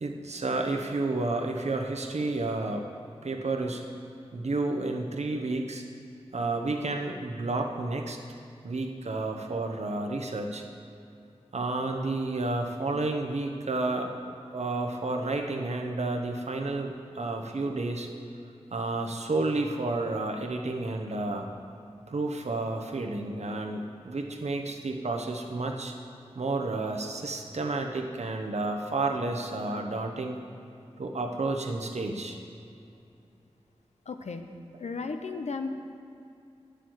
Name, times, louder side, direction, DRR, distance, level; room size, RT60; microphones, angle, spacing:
voice 1, 0.0-2.9 3.2-3.8 4.3-5.8 6.3-8.2 8.6-10.6 11.5-18.1 18.7-21.5 22.1-25.9 26.3-30.4 31.0-32.4, right 2 dB, 75° right, 3 dB, 1.0 m, -31 dB
voice 2, 34.1-34.5 34.8-35.7, left 4 dB, 85° left, 6 dB, 0.7 m, -34 dB
8.8 x 6.8 x 7.9 m, 2.6 s
cardioid pair, 45°, 11 cm